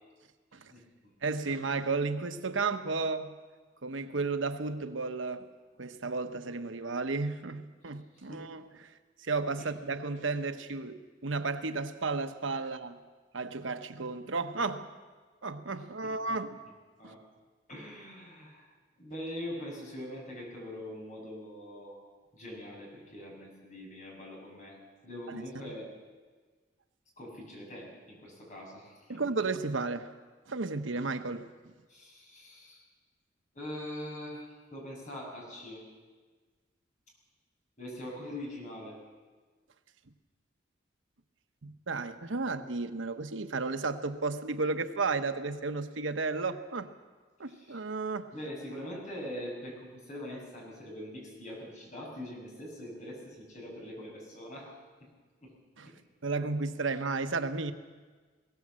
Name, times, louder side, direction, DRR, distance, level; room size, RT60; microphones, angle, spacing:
voice 1, 0.7-1.1 8.1-8.5 9.6-9.7 16.0-16.4 17.0-17.2 17.7-18.7 19.0-22.0 22.3-25.9 27.2-29.2 31.9-32.8 33.5-35.8 37.8-39.0 47.5-47.8 48.3-54.7 55.0-55.1 55.4-55.5 55.9-56.0, left 1 dB, 40° left, -1 dB, 6.3 m, -43 dB
voice 2, 1.2-3.3 3.8-5.5 5.8-8.9 9.2-13.0 13.3-14.9 15.4-16.6 17.0-17.1 25.3-25.4 29.1-30.1 30.5-31.7 41.6-46.9 47.4-48.3 55.8-55.9 56.2-57.7, right 3 dB, 90° right, 9 dB, 1.0 m, -33 dB
19.5 x 17.5 x 7.6 m, 1.4 s
head